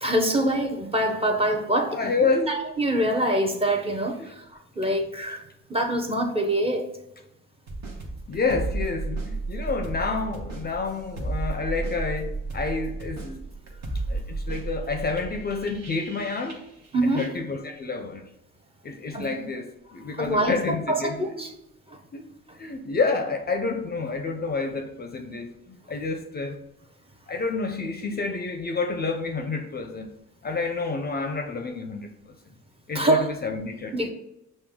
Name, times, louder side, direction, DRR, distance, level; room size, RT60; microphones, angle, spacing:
voice 1, 0.0-2.1 2.5-4.4 4.8-5.4 5.7-6.9 16.9-17.2 19.1-19.3 20.2-20.5 20.9-21.5 21.9-22.0 32.9-33.3 33.9-34.1, right 1 dB, 20° right, 0.6 m, -24 dB
voice 2, 1.9-2.5 4.2-4.3 8.3-13.4 14.1-16.6 17.2-18.2 18.8-21.5 22.1-22.3 22.6-26.6 27.3-30.1 30.4-32.3 32.9-34.1, left 4 dB, 35° left, 0.5 m, -29 dB
sound 1, 7.7-16.9 17.2-17.3, right 3 dB, 60° right, 1.0 m, -33 dB
5.9 x 2.1 x 3.5 m
cardioid pair, 90°, 30 cm